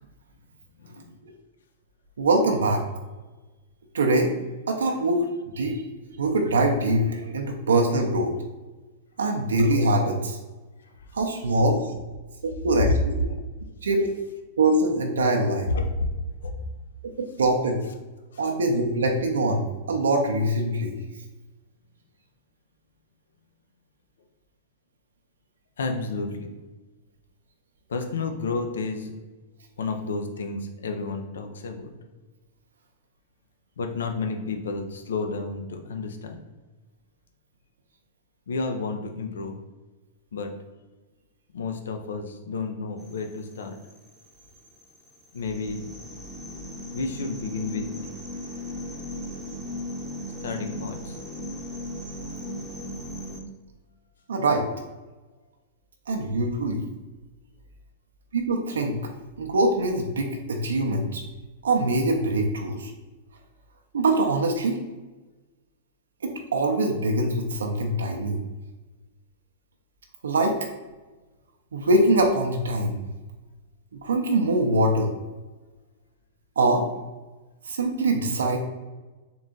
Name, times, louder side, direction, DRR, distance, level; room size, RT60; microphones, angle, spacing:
voice 1, 0.8-1.2 6.0-6.2 10.9-11.2 13.2-13.3 15.7-16.1 16.4-16.7 18.3-18.5 25.8-26.5 27.9-29.2 29.8-31.9 33.8-36.4 38.5-39.6 40.3-40.5 41.5-43.8 45.3-45.9 46.3-49.2 50.4-51.2, left 3 dB, 80° left, 5 dB, 0.6 m, -31 dB
voice 2, 2.2-2.8 3.9-4.3 4.7-5.2 5.5-5.8 6.2-8.3 9.2-10.4 11.1-11.9 12.4-13.1 13.8-14.1 14.6-15.7 17.2-17.8 18.4-20.9 54.3-54.7 56.1-56.9 58.3-59.0 59.4-61.2 61.6-62.9 63.9-64.8 66.2-68.4 70.2-70.6 71.7-73.0 73.9-75.1 76.6-76.8 77.7-78.6, right 2 dB, 85° right, 2 dB, 0.5 m, -23 dB
sound 1, 43.0-53.4, equal, 10° right, 0.7 m, -37 dB
3.8 x 2.4 x 3.8 m, 1.2 s
hypercardioid pair, 115°, 0 cm